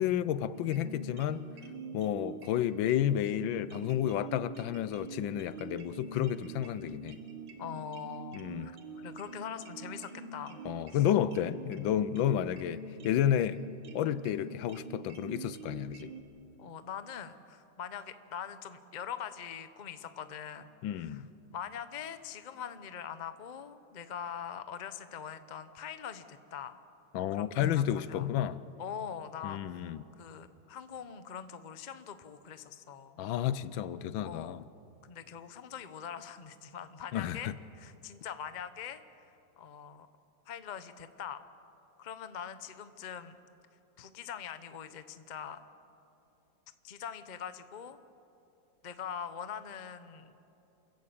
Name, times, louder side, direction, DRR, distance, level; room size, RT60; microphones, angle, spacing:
voice 1, 0.0-1.4 1.9-7.2 8.3-8.7 10.6-12.8 13.0-13.6 13.9-16.1 20.8-21.3 27.1-28.6 29.4-30.0 33.2-34.6 37.1-37.5, left 10 dB, 80° left, 1.4 m, -31 dB
sound 1, 0.5-16.2, right 4 dB, 70° right, 2.2 m, -46 dB
voice 2, 7.6-10.6 10.9-11.0 16.6-20.7 21.0-21.2 21.5-26.8 27.3-28.3 28.8-29.8 30.2-33.2 34.2-34.6 35.1-39.2 39.6-40.1 40.5-41.4 42.0-43.4 44.0-45.6 46.8-48.0 48.8-50.3, left 8 dB, 45° left, 0.5 m, -43 dB
28.5 x 14.5 x 8.6 m
omnidirectional pair, 2.1 m